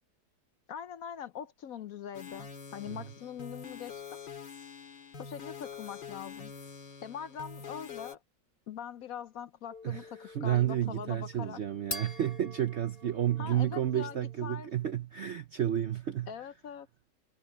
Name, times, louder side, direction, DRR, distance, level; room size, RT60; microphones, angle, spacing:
voice 1, 0.7-4.2 5.2-6.5 7.0-8.2 8.7-11.6 13.4-14.7 16.3-16.9, left 8 dB, 65° left, 1.0 m, -42 dB
sound 1, 2.1-8.2, left 6 dB, 90° left, 2.8 m, -45 dB
sound 2, 9.7-14.5, left 2 dB, 30° left, 3.0 m, -46 dB
voice 2, 9.8-16.3, right 11 dB, 65° right, 0.7 m, -31 dB
omnidirectional pair, 1.9 m